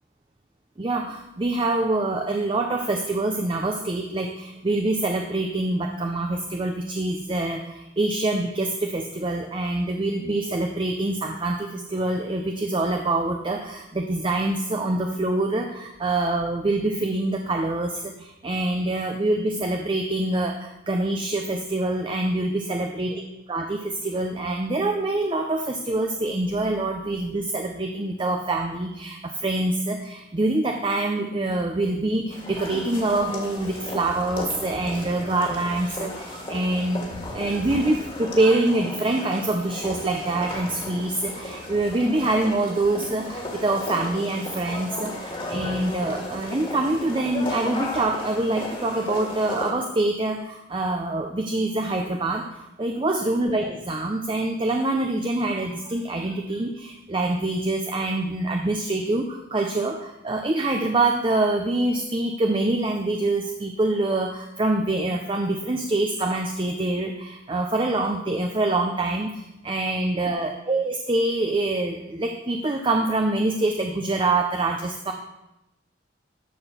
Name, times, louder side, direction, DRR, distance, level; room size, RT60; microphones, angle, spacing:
voice 1, 0.8-75.1, right 2 dB, 25° right, 4 dB, 0.6 m, -25 dB
sound 1, 32.3-49.7, left 1 dB, 30° left, 1.9 m, -35 dB
11.0 x 4.4 x 6.8 m, 0.93 s
head